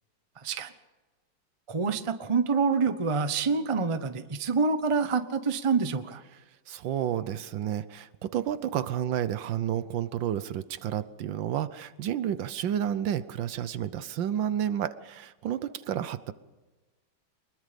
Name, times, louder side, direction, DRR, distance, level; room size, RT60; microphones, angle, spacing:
voice 1, 1.7-6.2, right 4 dB, 25° right, 10 dB, 0.7 m, -27 dB
voice 2, 6.7-16.3, right 10 dB, 70° right, 14 dB, 1.5 m, -31 dB
24.0 x 21.5 x 5.2 m, 1.2 s
omnidirectional pair, 2.2 m